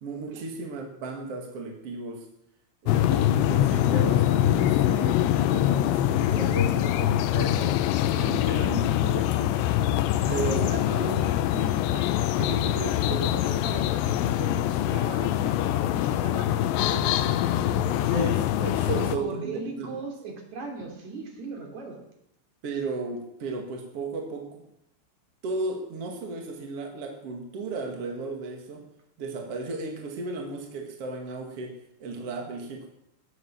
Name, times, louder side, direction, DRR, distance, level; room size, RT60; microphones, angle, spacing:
voice 1, 0.0-2.3 2.8-7.8 8.1-9.6 10.3-10.7 18.1-20.0 22.6-24.6 25.4-28.8 29.2-32.9, right 3 dB, 55° right, 2 dB, 1.6 m, -34 dB
sound 1, 2.9-19.2, left 12 dB, 80° left, 2.6 m, -24 dB
voice 2, 10.2-18.1 18.9-22.0, right 3 dB, 40° right, 1 dB, 3.8 m, -38 dB
20.0 x 8.6 x 7.3 m, 0.78 s
omnidirectional pair, 5.8 m